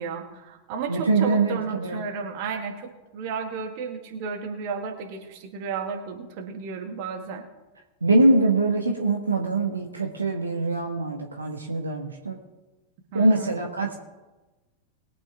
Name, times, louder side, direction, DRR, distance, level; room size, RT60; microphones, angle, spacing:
voice 1, 0.0-7.4 13.1-13.5, right 5 dB, 45° right, 4 dB, 2.0 m, -33 dB
voice 2, 0.9-2.0 8.0-12.4 13.1-13.9, right 2 dB, 75° right, 2 dB, 1.3 m, -23 dB
21.5 x 8.5 x 3.5 m, 1.2 s
figure-of-eight pair, 90°, 0 cm